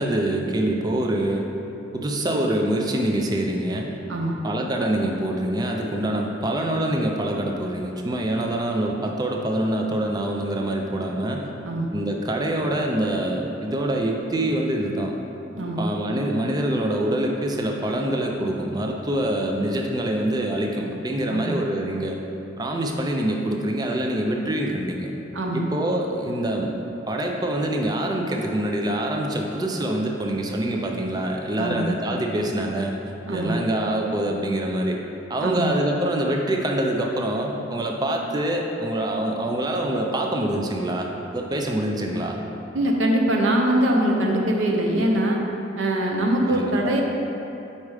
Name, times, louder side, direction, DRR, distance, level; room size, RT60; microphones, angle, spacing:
voice 1, 0.0-1.4 1.9-3.9 4.4-11.5 11.9-15.1 15.8-22.2 22.6-25.1 25.5-26.7 27.1-32.9 33.3-35.0 35.3-42.4 46.5-46.7, right 1 dB, 20° right, 1 dB, 0.4 m, -25 dB
voice 2, 4.1-4.4 11.6-11.9 15.5-15.8 21.3-21.5 25.3-25.6 31.6-31.8 33.3-33.6 35.4-35.7 42.7-45.4 45.8-47.0, right 1 dB, 85° right, 0 dB, 0.7 m, -22 dB
4.7 x 4.2 x 4.9 m, 2.9 s
head